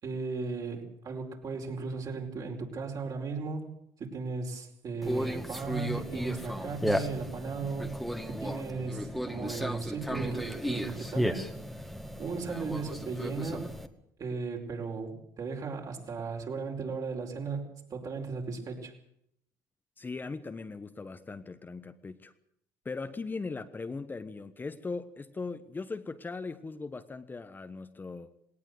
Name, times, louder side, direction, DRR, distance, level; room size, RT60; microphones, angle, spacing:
voice 1, 0.0-3.7 4.0-7.9 8.3-11.4 12.2-13.7 14.2-17.6 17.9-18.9, right 4 dB, 45° right, 2 dB, 5.0 m, -36 dB
Conversation, 5.0-13.9, equal, ahead, 2.0 m, -34 dB
voice 2, 20.0-22.3 22.8-28.5, left 4 dB, 25° left, 10 dB, 1.2 m, -39 dB
18.5 x 18.5 x 8.0 m, 0.72 s
hypercardioid pair, 75°, 8 cm